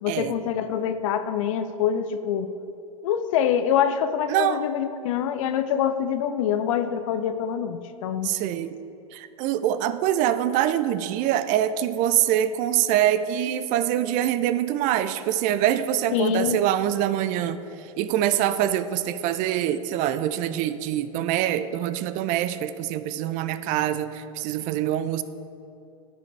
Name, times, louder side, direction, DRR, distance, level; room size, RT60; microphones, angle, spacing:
voice 1, 0.0-2.5 3.0-8.3 16.1-16.6, left 9 dB, 65° left, 10 dB, 0.5 m, -25 dB
voice 2, 4.3-4.6 8.2-8.8 9.1-17.6 18.0-25.2, right 11 dB, 45° right, 13 dB, 0.5 m, -24 dB
14.5 x 4.8 x 3.3 m, 2.8 s
hypercardioid pair, 95°, 18 cm